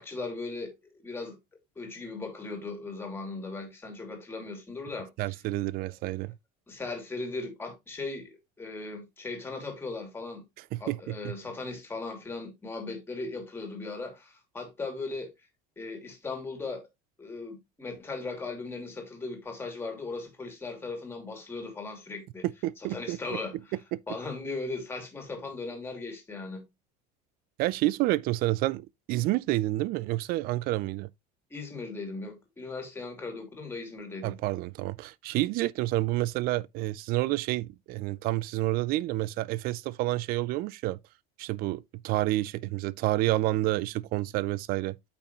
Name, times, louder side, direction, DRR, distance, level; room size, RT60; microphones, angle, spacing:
voice 1, 0.0-1.4 1.8-5.1 5.9-6.0 6.7-10.4 10.8-15.3 15.8-16.8 17.2-22.4 22.9-23.5 24.1-26.6 31.5-34.3, left 3 dB, 10° left, 2.5 m, -38 dB
voice 2, 5.2-6.3 10.7-11.3 22.6-23.4 23.9-24.0 27.6-31.1 34.2-41.0 41.4-45.0, right 17 dB, 45° right, 0.4 m, -29 dB
8.5 x 5.7 x 3.0 m
cardioid pair, 160°, 21 cm